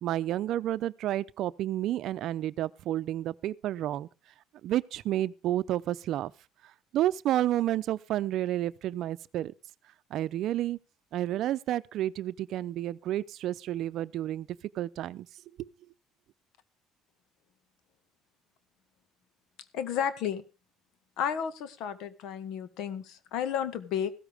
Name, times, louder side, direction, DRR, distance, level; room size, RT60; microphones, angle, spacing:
voice 1, 0.0-4.1 4.6-6.3 6.6-9.5 10.1-10.8 11.1-14.5 14.7-15.3 15.6-15.7, right 13 dB, 60° right, 0.6 m, -30 dB
voice 2, 19.7-20.4 21.2-24.1, left 8 dB, 70° left, 1.6 m, -32 dB
15.5 x 13.5 x 3.5 m
cardioid pair, 110°, 0 cm